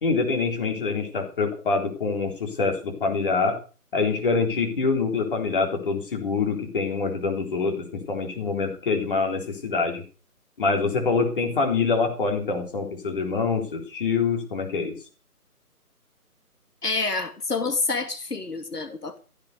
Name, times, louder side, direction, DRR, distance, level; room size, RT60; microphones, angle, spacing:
voice 1, 0.0-3.6 3.9-10.0 10.6-14.9, left 4 dB, 35° left, 3 dB, 3.8 m, -25 dB
voice 2, 16.8-19.2, left 3 dB, 85° left, 8 dB, 2.5 m, -28 dB
15.0 x 9.3 x 6.8 m, 0.36 s
figure-of-eight pair, 165°, 46 cm